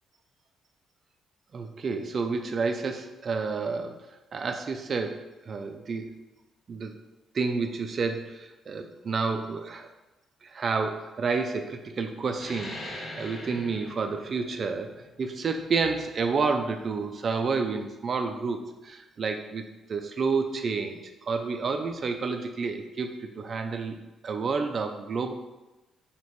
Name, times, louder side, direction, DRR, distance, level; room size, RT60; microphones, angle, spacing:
voice 1, 1.5-3.9 4.3-6.1 6.7-6.9 7.3-9.9 10.4-24.0 24.2-25.3, right 4 dB, 45° right, 6 dB, 0.4 m, -30 dB
sound 1, 12.3-17.5, left 1 dB, 35° left, 1.2 m, -43 dB
3.1 x 2.9 x 4.3 m, 1.1 s
cardioid pair, 90°, 0 cm